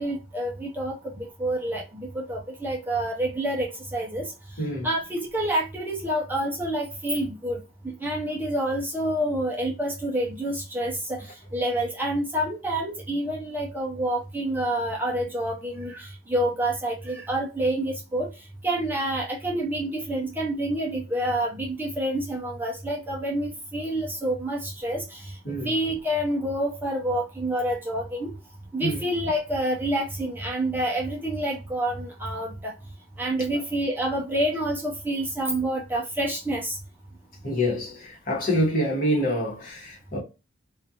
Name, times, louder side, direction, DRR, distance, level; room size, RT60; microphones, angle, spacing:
voice 1, 0.0-4.3 4.8-7.6 7.8-18.3 18.6-25.3 25.6-28.3 28.7-32.7 33.2-36.8, right 1 dB, 10° right, 0.5 m, -28 dB
voice 2, 4.6-4.9 25.4-25.7 28.8-29.0 33.5-33.6 37.4-40.2, equal, 45° left, 1.1 m, -26 dB
2.4 x 2.4 x 2.7 m
head